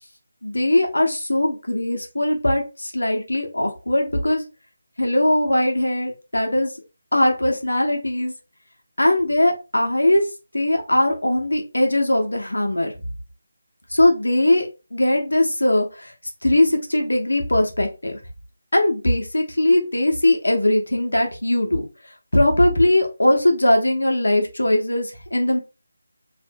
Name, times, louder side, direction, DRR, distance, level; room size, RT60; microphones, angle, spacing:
voice 1, 0.4-4.4 5.0-6.7 7.1-8.3 9.0-10.3 10.5-12.9 13.9-16.1 16.4-18.2 18.7-21.8 22.3-25.6, left 1 dB, 90° left, 2 dB, 0.8 m, -20 dB
2.7 x 2.5 x 2.2 m, 0.29 s
figure-of-eight pair, 160°, 0 cm